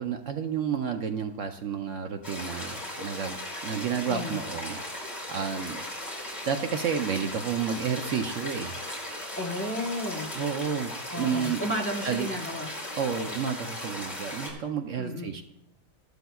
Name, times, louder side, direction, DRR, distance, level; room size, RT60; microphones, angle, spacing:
voice 1, 0.0-3.4 3.6-5.9 6.5-8.7 10.3-10.9 11.2-11.6 12.0-12.3 13.0-15.4, right 7 dB, 65° right, 6 dB, 0.9 m, -31 dB
sound 1, 2.2-14.5, left 1 dB, 30° left, 3.2 m, -37 dB
voice 2, 9.4-10.3 11.1-12.7 15.0-15.3, left 1 dB, 10° left, 1 dB, 1.0 m, -33 dB
14.0 x 11.5 x 2.3 m, 0.81 s
omnidirectional pair, 1.5 m